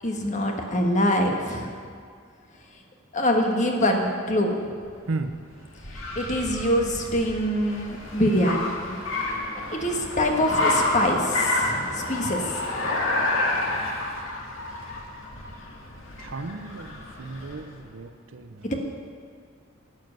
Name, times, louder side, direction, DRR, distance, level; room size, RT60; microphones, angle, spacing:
voice 1, 0.0-1.7 3.1-4.6 6.2-9.0 9.7-12.4 18.6-18.7, left 1 dB, 35° left, 2 dB, 1.5 m, -24 dB
Car, 4.8-17.7, left 2 dB, 70° left, 2.1 m, -29 dB
voice 2, 16.2-18.7, right 3 dB, 70° right, 8 dB, 0.7 m, -35 dB
12.0 x 7.4 x 9.5 m, 2.1 s
head